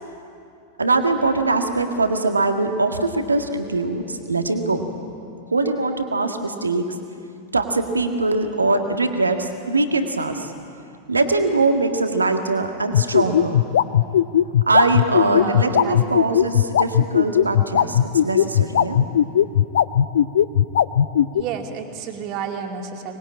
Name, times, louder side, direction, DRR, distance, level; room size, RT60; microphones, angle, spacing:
voice 1, 0.8-4.8 5.5-7.0 7.5-10.5 11.1-13.6 14.7-19.0, right 3 dB, 80° right, 6 dB, 1.7 m, -22 dB
sound 1, 12.9-21.4, left 10 dB, 60° left, 0.5 m, -16 dB
voice 2, 15.2-16.0 21.3-23.2, right 7 dB, 40° right, 3 dB, 2.6 m, -31 dB
24.5 x 20.5 x 8.7 m, 2.5 s
figure-of-eight pair, 90°, 0 cm